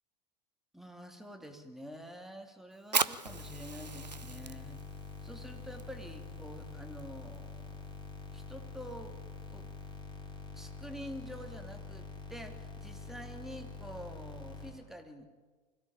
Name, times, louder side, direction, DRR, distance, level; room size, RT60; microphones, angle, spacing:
voice 1, 0.7-4.8 5.2-7.9 8.3-9.2 9.5-9.7 10.5-15.3, equal, ahead, 5 dB, 2.6 m, -47 dB
Fire, 2.8-10.0, right 4 dB, 85° right, 0.7 m, -40 dB
sound 1, 3.3-14.7, left 3 dB, 25° left, 5.2 m, -46 dB
24.5 x 16.5 x 8.7 m, 1.4 s
figure-of-eight pair, 80°, 21 cm